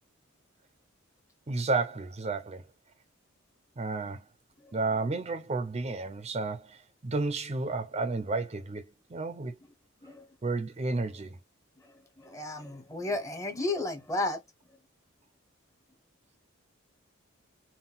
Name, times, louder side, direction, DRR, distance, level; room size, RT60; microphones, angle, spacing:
voice 1, 1.5-2.6 3.8-4.2 4.7-9.6 10.4-11.4, right 3 dB, 30° right, 0.5 m, -32 dB
voice 2, 12.2-14.4, left 2 dB, 15° left, 0.7 m, -32 dB
3.9 x 2.2 x 3.9 m
head